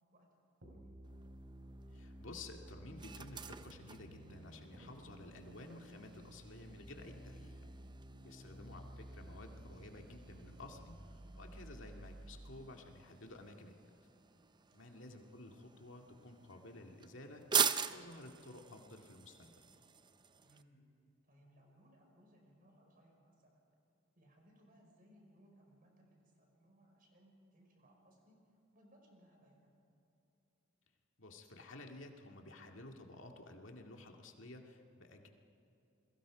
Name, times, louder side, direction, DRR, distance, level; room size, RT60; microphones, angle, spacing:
sound 1, 0.6-12.6, right 1 dB, 65° right, 5.3 m, -54 dB
sound 2, 1.0-20.6, right 7 dB, 20° right, 0.6 m, -44 dB
voice 1, 1.9-7.5 8.2-13.7 14.7-19.6 31.2-35.3, left 2 dB, 70° left, 2 dB, 2.1 m, -53 dB
voice 2, 20.4-20.8 21.2-23.6 24.2-29.7, equal, 45° right, 1 dB, 5.5 m, -66 dB
29.0 x 22.0 x 5.1 m, 2.8 s
head